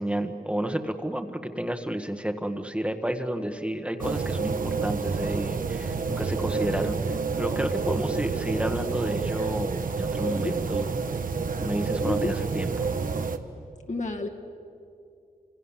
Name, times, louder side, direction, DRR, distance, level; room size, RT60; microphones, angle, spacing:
voice 1, 0.0-10.9 11.6-12.9, right 1 dB, 10° right, 5 dB, 1.6 m, -31 dB
sound 1, 4.0-13.4, right 4 dB, 65° right, 1.3 m, -29 dB
voice 2, 10.2-10.6 12.0-12.4 13.9-14.3, left 3 dB, 55° left, 3 dB, 2.3 m, -31 dB
29.0 x 26.5 x 7.4 m, 2.5 s
wide cardioid pair, 75°, 15 cm